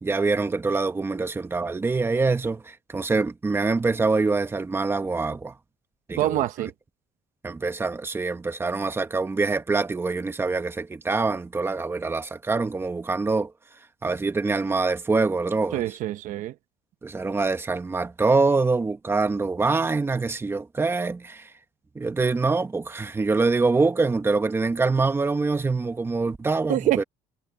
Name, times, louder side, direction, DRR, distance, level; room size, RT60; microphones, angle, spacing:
voice 1, 0.0-5.5 6.1-6.4 7.4-13.5 14.0-15.8 17.0-21.5 21.9-27.0, right 3 dB, 15° right, 1.5 m, -25 dB
voice 2, 6.2-6.7 15.7-16.5 26.7-27.0, right 14 dB, 70° right, 1.1 m, -25 dB
cardioid pair, 120°, 14 cm